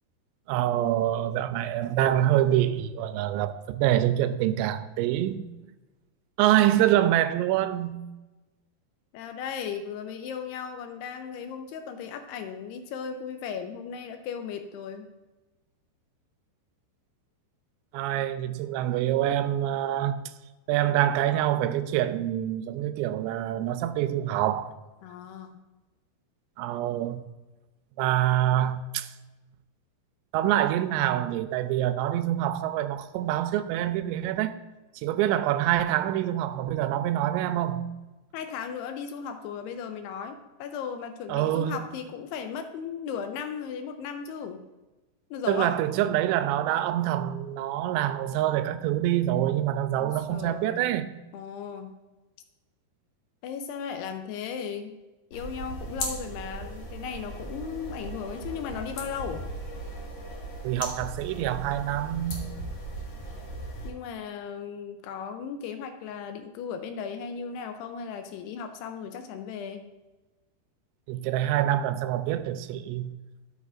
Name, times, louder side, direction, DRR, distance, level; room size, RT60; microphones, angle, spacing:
voice 1, 0.5-5.4 6.4-8.0 17.9-20.2 20.7-24.7 26.6-27.2 28.0-29.1 30.3-34.6 35.0-37.9 41.3-41.8 45.5-51.1 60.6-62.5 71.1-73.1, right 12 dB, 90° right, 2.8 m, -26 dB
voice 2, 9.1-15.1 25.0-25.6 38.3-44.6 45.3-45.8 50.0-50.8 51.3-52.0 53.4-55.0 55.3-59.5 63.8-69.8, left 7 dB, 85° left, 2.5 m, -36 dB
sound 1, 55.3-63.9, right 1 dB, 50° left, 2.2 m, -37 dB
12.5 x 7.9 x 2.5 m
omnidirectional pair, 5.0 m